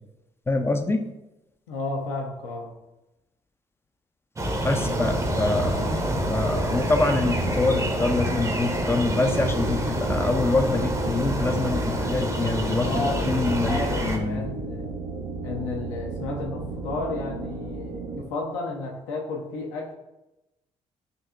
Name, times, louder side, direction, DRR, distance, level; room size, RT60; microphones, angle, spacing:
voice 1, 0.5-1.1 4.6-5.8 6.3-14.5, left 3 dB, 15° left, 7 dB, 0.4 m, -25 dB
voice 2, 1.7-2.7 12.8-14.9 15.4-19.9, left 3 dB, 70° left, 0 dB, 0.7 m, -32 dB
sound 1, 4.4-14.2, equal, 20° right, 0.7 m, -27 dB
sound 2, 4.7-18.2, right 3 dB, 65° right, 0.5 m, -34 dB
5.2 x 2.8 x 2.4 m, 0.96 s
figure-of-eight pair, 40°, 16 cm